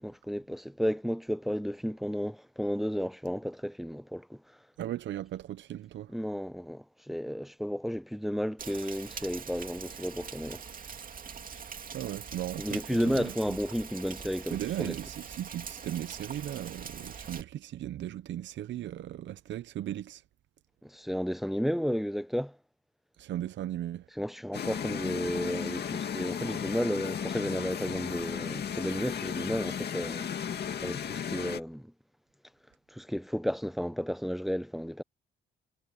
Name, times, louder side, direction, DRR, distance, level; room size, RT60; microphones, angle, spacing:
voice 1, 0.0-4.4 6.1-10.6 12.6-14.9 20.8-22.6 24.2-30.3 30.8-31.9 32.9-35.0, equal, ahead, 0.6 m, -33 dB
voice 2, 4.8-6.1 11.9-13.6 14.5-20.2 23.2-24.1, right 12 dB, 65° right, 0.7 m, -37 dB
Rain, 8.6-17.4, right 6 dB, 45° right, 2.5 m, -43 dB
sound 1, 24.5-31.6, left 8 dB, 55° left, 2.2 m, -35 dB
cardioid pair, 90°, 20 cm